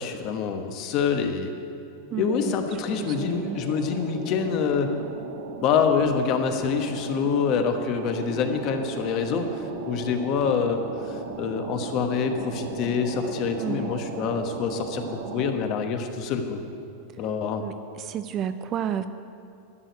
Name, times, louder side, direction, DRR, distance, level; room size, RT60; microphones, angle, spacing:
voice 1, 0.0-1.5 2.2-4.9 5.6-15.0 15.3-16.6 17.2-17.6, left 6 dB, 40° left, 6 dB, 1.1 m, -26 dB
voice 2, 2.1-2.6 3.0-3.6 13.5-13.9 17.6-17.7 18.1-19.1, right 9 dB, 30° right, 11 dB, 0.4 m, -31 dB
sound 1, 2.3-15.5, right 5 dB, 60° right, 1.3 m, -37 dB
12.5 x 6.4 x 9.4 m, 2.7 s
supercardioid pair, 160°, 0 cm